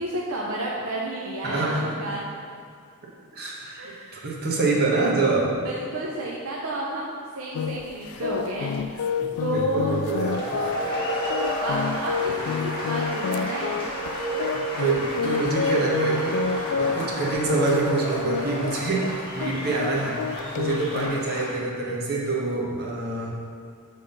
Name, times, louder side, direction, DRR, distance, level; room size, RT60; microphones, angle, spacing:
voice 1, 0.0-1.8 2.0-2.2 3.8-4.3 5.6-8.7 9.4-10.0 11.6-13.8 16.6-16.9 20.9-21.0, right 1 dB, 65° right, -4 dB, 0.7 m, -31 dB
voice 2, 1.4-1.9 3.3-5.5 9.0-10.6 11.1-11.3 14.8-23.3, right 3 dB, 45° right, -4 dB, 1.3 m, -26 dB
sound 1, 7.5-21.3, left 7 dB, 80° left, 0.3 m, -29 dB
sound 2, 9.9-21.6, left 1 dB, 25° left, 1.6 m, -33 dB
sound 3, 10.5-18.7, right 4 dB, 10° right, 1.6 m, -33 dB
7.0 x 3.7 x 5.5 m, 2.3 s
head